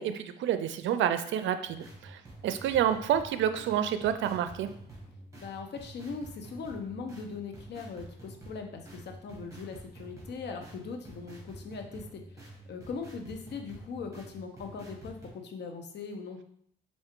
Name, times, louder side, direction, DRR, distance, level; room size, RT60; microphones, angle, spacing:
voice 1, 0.0-4.7, right 10 dB, 70° right, 10 dB, 0.4 m, -29 dB
sound 1, 1.7-15.3, right 1 dB, 15° right, 1.7 m, -49 dB
voice 2, 5.4-16.4, left 5 dB, 60° left, 4 dB, 0.8 m, -40 dB
4.4 x 2.5 x 3.7 m, 0.65 s
cardioid pair, 90°, 20 cm